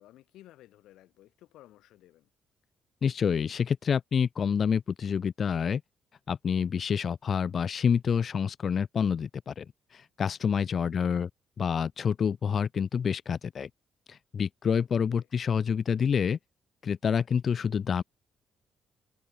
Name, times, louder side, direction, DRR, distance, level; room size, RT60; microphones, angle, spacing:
voice 1, 0.0-2.3 10.7-11.2, left 14 dB, 85° left, 7.5 m, -55 dB
voice 2, 3.0-5.8 6.3-9.7 9.9-11.3 11.6-13.7 14.1-16.4 16.8-18.0, left 7 dB, 50° left, 0.7 m, -28 dB
cardioid pair, 90°, 0 cm